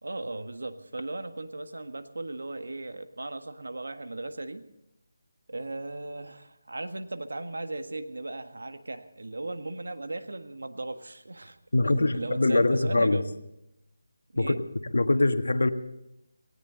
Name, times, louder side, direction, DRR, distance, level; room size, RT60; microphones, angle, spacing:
voice 1, 0.0-4.7 5.5-11.6 11.8-13.4 14.3-14.6, right 2 dB, 90° right, 9 dB, 1.6 m, -37 dB
voice 2, 11.7-13.2 14.4-14.5 14.9-15.7, left 2 dB, 80° left, 8 dB, 1.5 m, -23 dB
18.5 x 18.0 x 3.9 m, 0.86 s
figure-of-eight pair, 170°, 0 cm